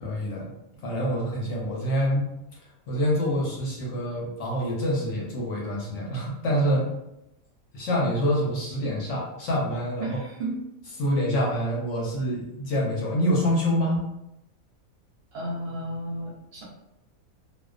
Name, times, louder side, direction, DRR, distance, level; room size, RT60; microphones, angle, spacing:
voice 1, 0.0-0.5 0.8-2.3 2.9-6.8 7.7-10.2 11.0-14.0, equal, 65° left, -3 dB, 0.9 m, -26 dB
voice 2, 10.0-10.6 15.3-16.6, right 1 dB, 60° right, -4 dB, 0.7 m, -33 dB
2.4 x 2.2 x 2.4 m, 0.87 s
omnidirectional pair, 1.5 m